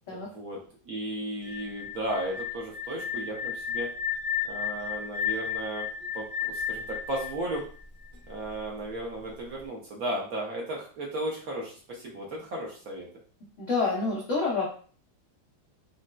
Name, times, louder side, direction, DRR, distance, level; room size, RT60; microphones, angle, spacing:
voice 1, 0.1-0.6 0.8-3.9 4.4-5.9 6.1-7.7 8.3-13.1, right 1 dB, 65° right, -2 dB, 0.9 m, -35 dB
sound 1, 1.4-8.3, left 8 dB, 30° right, 0.7 m, -33 dB
voice 2, 13.6-14.7, left 4 dB, 85° left, -4 dB, 0.6 m, -27 dB
3.8 x 2.1 x 2.2 m, 0.42 s
omnidirectional pair, 2.2 m